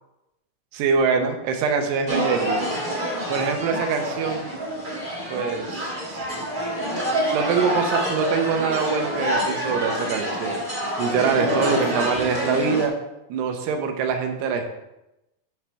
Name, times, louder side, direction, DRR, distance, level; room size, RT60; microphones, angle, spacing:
voice 1, 0.7-2.7 3.3-4.5 5.3-6.3 7.3-10.6 11.0-12.9 13.3-14.7, right 5 dB, 90° right, 4 dB, 3.0 m, -24 dB
sound 1, 2.1-12.9, equal, 70° right, 0.5 m, -27 dB
10.5 x 3.5 x 6.2 m, 0.92 s
omnidirectional pair, 4.7 m